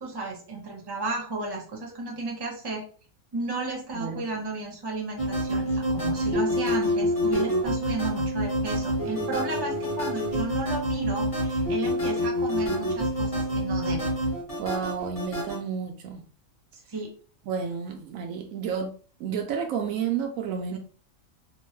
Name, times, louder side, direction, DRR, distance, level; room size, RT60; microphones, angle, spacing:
voice 1, 0.0-2.8 3.3-14.1 16.9-17.1, right 2 dB, 25° right, 0.7 m, -33 dB
voice 2, 3.9-4.3 14.6-16.2 17.5-18.9 19.2-20.8, right 7 dB, 75° right, 0.9 m, -31 dB
sound 1, 5.2-15.6, equal, 25° left, 1.1 m, -27 dB
2.9 x 2.1 x 3.1 m
omnidirectional pair, 1.4 m